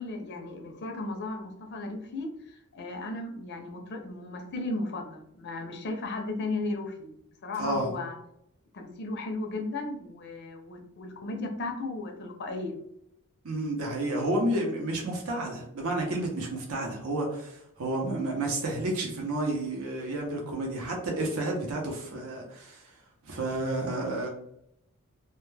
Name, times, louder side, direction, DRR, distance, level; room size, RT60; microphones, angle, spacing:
voice 1, 0.0-7.1 7.4-8.2 8.7-12.8, left 2 dB, 50° left, 3 dB, 0.5 m, -35 dB
voice 2, 7.6-7.9 13.4-22.8 23.2-24.3, right 1 dB, 70° right, 0 dB, 0.7 m, -31 dB
2.2 x 2.2 x 3.1 m, 0.75 s
head